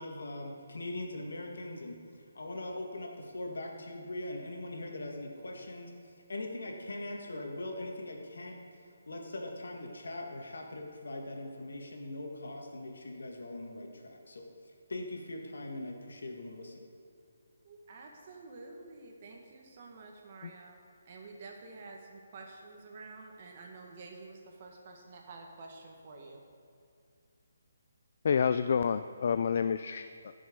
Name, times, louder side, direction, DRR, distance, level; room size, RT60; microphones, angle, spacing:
voice 1, 0.0-2.0 2.3-8.6 9.1-14.5 14.9-16.8, left 2 dB, 85° left, 1 dB, 2.0 m, -41 dB
voice 2, 17.6-20.8 21.0-26.4, right 3 dB, 35° right, 1 dB, 1.6 m, -49 dB
voice 3, 28.2-30.3, left 6 dB, 50° left, 11 dB, 0.3 m, -29 dB
15.5 x 6.3 x 5.3 m, 2.5 s
hypercardioid pair, 165°, 0 cm